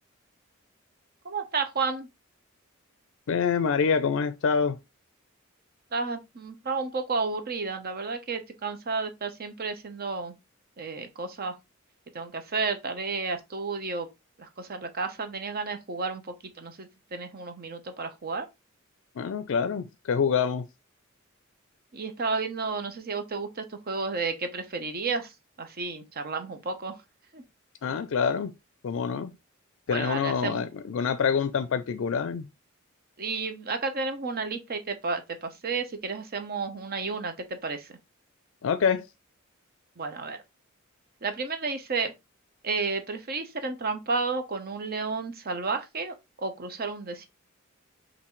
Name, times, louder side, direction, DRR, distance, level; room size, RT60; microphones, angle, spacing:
voice 1, 1.2-2.1 5.9-10.3 10.8-11.5 12.1-14.1 14.4-18.5 21.9-25.3 25.6-27.0 27.3-27.4 29.9-30.6 33.2-38.0 40.0-40.4 41.2-42.1 42.6-47.3, right 4 dB, 45° right, 0.8 m, -32 dB
voice 2, 3.3-4.8 19.2-20.6 27.8-28.5 28.8-29.3 29.9-32.5 38.6-39.1, left 6 dB, 65° left, 0.4 m, -26 dB
5.7 x 2.6 x 3.1 m
head